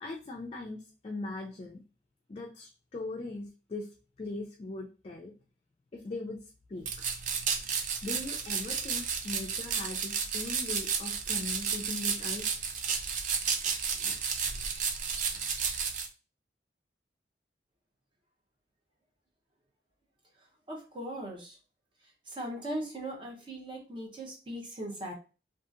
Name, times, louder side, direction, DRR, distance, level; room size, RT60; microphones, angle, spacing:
voice 1, 0.0-1.8 2.3-3.9 4.2-5.3 5.9-6.4 6.7-6.9 8.0-12.6 13.9-14.2, left 2 dB, 30° left, 0 dB, 0.3 m, -40 dB
sound 1, 6.8-16.1, right 6 dB, 45° right, 0.3 m, -32 dB
voice 2, 20.7-21.6 22.3-25.1, right 1 dB, 25° right, 0 dB, 0.7 m, -39 dB
2.7 x 2.5 x 2.4 m, 0.34 s
head